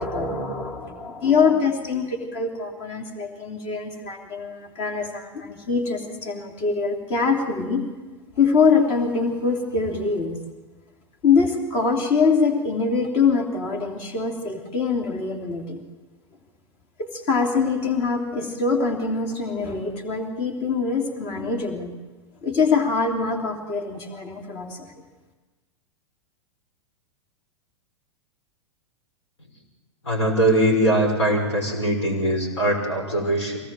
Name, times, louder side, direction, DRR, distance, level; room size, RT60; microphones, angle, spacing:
voice 1, 0.0-7.8 8.4-10.4 11.2-15.8 17.0-21.9 22.4-24.9, left 5 dB, 35° left, 3 dB, 3.0 m, -23 dB
voice 2, 30.1-33.6, right 1 dB, 70° left, 2 dB, 5.7 m, -21 dB
24.5 x 18.5 x 7.6 m, 1.3 s
figure-of-eight pair, 95°, 15 cm